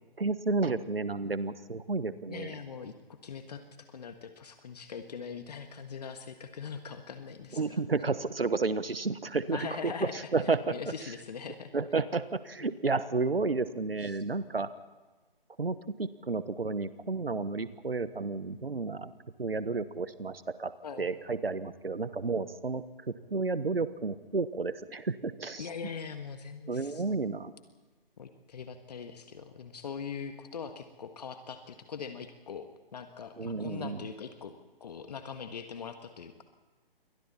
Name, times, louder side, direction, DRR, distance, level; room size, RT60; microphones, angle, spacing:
voice 1, 0.2-2.5 7.6-10.7 11.7-14.7 15.6-19.1 19.4-22.8 23.3-25.6 26.7-27.5 33.4-34.0, right 3 dB, 80° right, 14 dB, 1.4 m, -31 dB
voice 2, 2.3-2.9 3.2-3.6 3.9-7.8 9.5-11.7 12.6-12.8 14.0-14.2 20.8-21.1 25.6-27.2 28.2-32.6 32.9-34.5 34.8-36.4, left 6 dB, 45° left, 7 dB, 1.7 m, -42 dB
29.0 x 23.0 x 4.3 m, 1.2 s
figure-of-eight pair, 140°, 29 cm